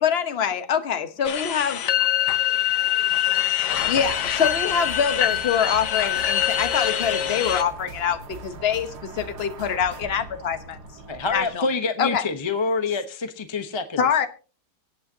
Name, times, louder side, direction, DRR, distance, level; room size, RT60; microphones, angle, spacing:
voice 1, 0.0-1.8 3.9-10.8 11.3-11.7 12.0-12.3 14.0-14.3, left 7 dB, 40° left, 9 dB, 1.2 m, -24 dB
voice 2, 1.1-2.0 2.3-4.3, equal, 55° right, -1 dB, 8.5 m, -49 dB
sound 1, 1.2-7.6, left 11 dB, 85° left, 1.5 m, -24 dB
sound 2, 3.7-11.6, right 5 dB, 75° right, 1.9 m, -41 dB
voice 3, 11.1-14.1, left 4 dB, 25° left, 8 dB, 0.7 m, -26 dB
24.5 x 8.5 x 2.8 m, 0.36 s
omnidirectional pair, 1.8 m